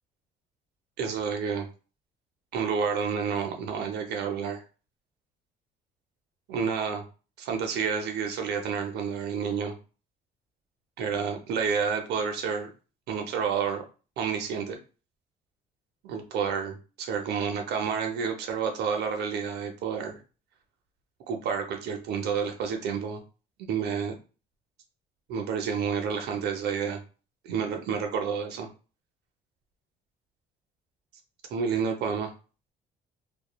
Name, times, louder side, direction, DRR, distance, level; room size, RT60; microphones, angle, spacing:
voice 1, 1.0-1.7 2.5-4.6 6.5-7.0 7.4-9.8 11.0-12.7 13.1-13.8 14.2-14.8 16.0-20.2 21.3-23.2 23.7-24.1 25.3-27.0 27.4-28.7 31.5-32.3, right 6 dB, 75° right, 4 dB, 0.7 m, -29 dB
3.0 x 2.4 x 2.2 m, 0.35 s
cardioid pair, 110°, 17 cm